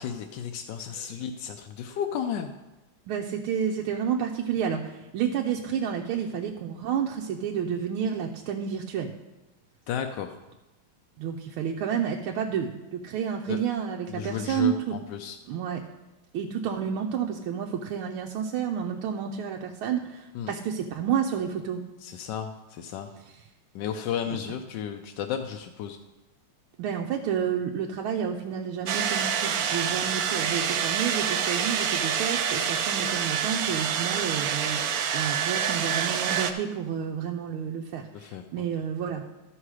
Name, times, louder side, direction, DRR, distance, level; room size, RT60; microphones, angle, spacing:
voice 1, 0.0-2.5 9.9-10.3 13.5-13.6 14.1-15.4 20.3-20.5 22.0-23.1 23.7-26.0 38.1-38.4, left 8 dB, 70° left, 5 dB, 1.1 m, -33 dB
voice 2, 3.1-9.1 11.2-15.0 15.5-15.8 16.3-21.8 23.3-23.4 26.8-39.2, right 8 dB, 90° right, 0 dB, 1.6 m, -30 dB
sound 1, 28.9-36.5, right 8 dB, 70° right, 0.9 m, -27 dB
12.5 x 5.8 x 4.8 m, 1.0 s
omnidirectional pair, 2.3 m